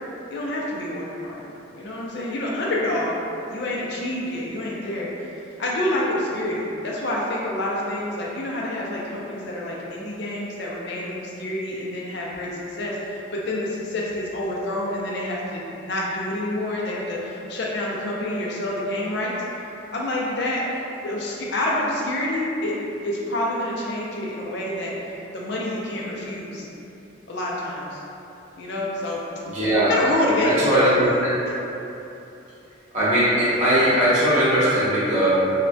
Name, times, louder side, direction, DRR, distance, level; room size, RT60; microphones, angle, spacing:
voice 1, 0.3-1.5 1.7-3.2 3.5-5.1 5.6-19.3 19.9-20.6 21.0-22.7 23.0-24.9 25.3-26.7 27.3-28.0 28.6-29.2 29.9-30.6, left 1 dB, 60° left, -4 dB, 0.4 m, -27 dB
voice 2, 29.4-29.9 30.4-31.3 32.9-35.3, right 1 dB, 35° right, -11 dB, 0.7 m, -19 dB
3.1 x 2.1 x 2.6 m, 3.0 s
head